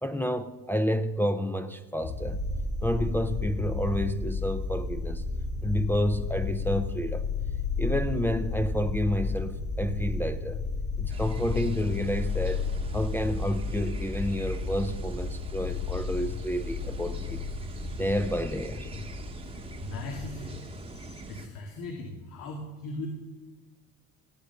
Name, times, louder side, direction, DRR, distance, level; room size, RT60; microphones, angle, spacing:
voice 1, 0.0-2.4 2.8-5.2 5.6-7.3 7.8-10.6 11.0-12.6 12.9-17.5 18.0-18.9, equal, 5° left, 0.5 m, -29 dB
sound 1, 2.0-21.2, left 4 dB, 60° left, 5.3 m, -33 dB
sound 2, 11.1-21.5, right 3 dB, 15° right, 1.0 m, -44 dB
voice 2, 19.4-20.7 21.3-23.1, left 2 dB, 80° left, 2.0 m, -39 dB
17.0 x 9.0 x 6.8 m
cardioid pair, 135°, 33 cm